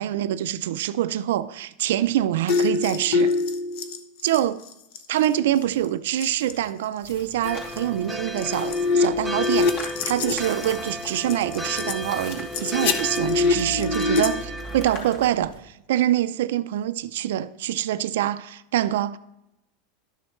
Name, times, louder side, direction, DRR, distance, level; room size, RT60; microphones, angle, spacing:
voice 1, 0.0-3.3 4.2-4.6 5.1-19.2, right 12 dB, 80° right, 0.4 m, -25 dB
sound 1, 2.5-5.4 5.6-5.9 6.2-6.6 7.1-7.2 7.8-7.9 8.2-11.9 12.3-14.3, left 4 dB, 65° left, 0.9 m, -25 dB
sound 2, 7.0-15.6, equal, 50° left, 2.6 m, -41 dB
sound 3, 7.4-14.9, equal, 5° left, 0.5 m, -34 dB
12.0 x 6.4 x 3.1 m
supercardioid pair, 135°, 0 cm